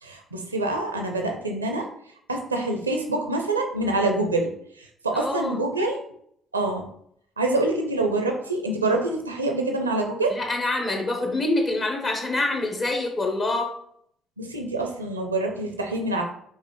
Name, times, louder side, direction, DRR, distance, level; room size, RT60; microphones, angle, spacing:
voice 1, 0.0-1.9 2.3-4.5 5.0-6.0 6.5-6.9 7.4-10.4 14.4-16.2, right 2 dB, 90° right, 3 dB, 0.4 m, -26 dB
voice 2, 5.1-5.7 10.3-13.7, left 2 dB, 40° left, 2 dB, 1.2 m, -26 dB
4.5 x 3.0 x 3.1 m, 0.68 s
figure-of-eight pair, 50°, 0 cm